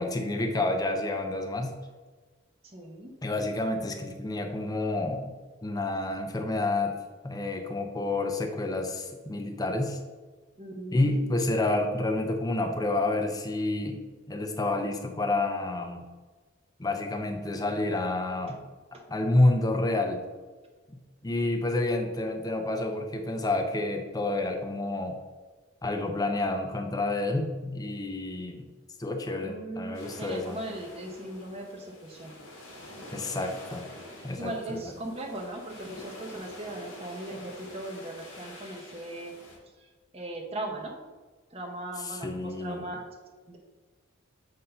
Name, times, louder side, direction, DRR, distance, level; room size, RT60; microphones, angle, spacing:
voice 1, 0.0-1.7 3.2-6.9 7.2-10.0 10.9-14.0 14.3-16.0 16.8-18.6 19.1-20.2 20.9-21.0 21.2-25.2 25.8-28.6 29.0-30.6 33.1-33.8 34.2-34.8 42.0-42.9, left 2 dB, 15° left, 4 dB, 0.5 m, -29 dB
voice 2, 2.6-3.1 10.6-11.2 29.3-32.3 34.4-39.3 39.8-40.9 41.5-43.1 43.5-43.6, right 1 dB, 30° right, 1 dB, 0.9 m, -38 dB
sound 1, 29.9-39.6, left 1 dB, 75° left, 2.0 m, -47 dB
7.8 x 2.7 x 5.4 m, 1.3 s
head